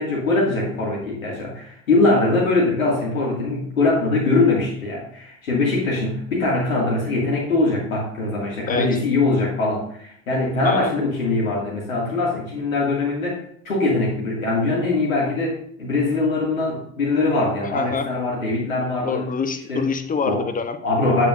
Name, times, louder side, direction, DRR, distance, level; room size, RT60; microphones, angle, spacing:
voice 1, 0.0-19.3 19.7-19.9 20.2-20.4 20.8-21.3, left 2 dB, 80° left, -4 dB, 2.6 m, -22 dB
voice 2, 8.7-9.0 10.6-10.9 17.6-18.1 19.0-20.8, left 6 dB, 20° left, 8 dB, 1.0 m, -26 dB
8.9 x 8.2 x 2.7 m, 0.65 s
hypercardioid pair, 80°, 40 cm